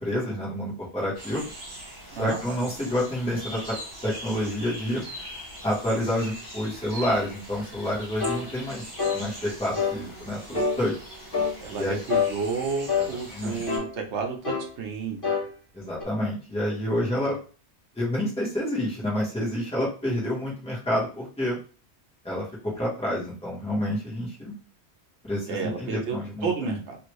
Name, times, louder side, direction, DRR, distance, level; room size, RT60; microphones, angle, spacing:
voice 1, 0.0-1.5 2.2-3.8 4.0-5.0 5.6-10.9 11.8-12.0 13.0-13.6 15.7-17.4 17.9-21.6 22.2-24.5 25.2-26.8, left 1 dB, 5° left, -7 dB, 1.3 m, -28 dB
sound 1, 1.1-13.8, right 1 dB, 55° right, 1.5 m, -41 dB
sound 2, 8.2-8.4 9.0-9.2 9.7-10.0 10.5-10.8 11.3-11.6 12.1-12.3 12.9-13.1 13.7-13.9 14.4-14.7 15.2-15.5 16.0-16.1, left 5 dB, 50° left, 1.3 m, -25 dB
voice 2, 11.6-15.2 17.2-17.3 25.5-26.2 26.4-27.0, right 5 dB, 90° right, 2 dB, 1.1 m, -31 dB
3.3 x 2.7 x 3.1 m, 0.38 s
omnidirectional pair, 1.1 m